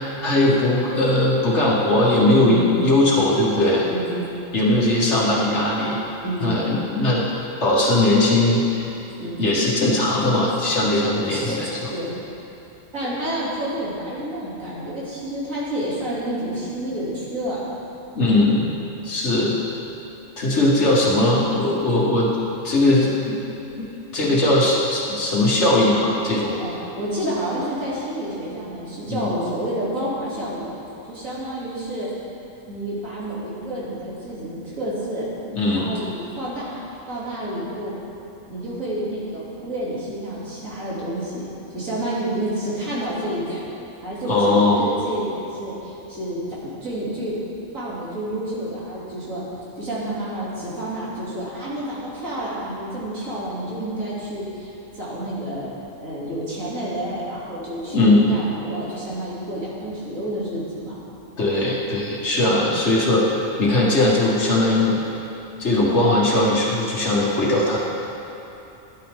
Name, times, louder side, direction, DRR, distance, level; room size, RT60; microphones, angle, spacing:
voice 1, 0.2-3.9 4.5-6.0 6.4-7.2 7.6-8.9 9.4-11.9 18.2-18.8 19.0-19.6 20.4-22.3 22.6-23.4 23.8-26.6 29.1-29.3 35.5-35.9 44.2-44.9 57.9-58.3 61.4-63.3 63.6-65.0 65.6-67.8, left 2 dB, 60° left, -5 dB, 2.1 m, -19 dB
voice 2, 2.4-2.8 3.9-4.1 6.2-6.6 9.2-9.5 11.3-12.1 12.9-17.6 26.6-30.7 31.1-32.1 32.7-35.3 35.7-37.9 38.5-43.6 44.0-47.4 47.7-49.4 49.8-55.7 56.0-61.0 62.4-62.7, right 1 dB, 90° right, -8 dB, 3.3 m, -29 dB
12.0 x 11.5 x 3.7 m, 3.0 s
omnidirectional pair, 1.3 m